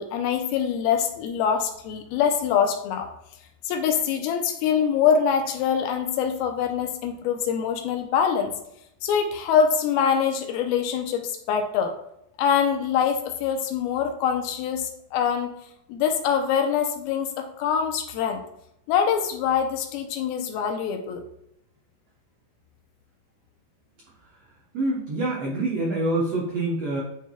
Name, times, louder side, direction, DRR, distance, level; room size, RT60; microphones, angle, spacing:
voice 1, 0.0-3.1 3.6-8.5 9.0-11.9 12.4-15.5 15.9-18.4 18.9-21.3, left 7 dB, 85° left, 5 dB, 2.5 m, -24 dB
voice 2, 24.7-27.0, right 2 dB, 90° right, -3 dB, 1.3 m, -26 dB
9.5 x 4.5 x 2.3 m, 0.77 s
omnidirectional pair, 4.3 m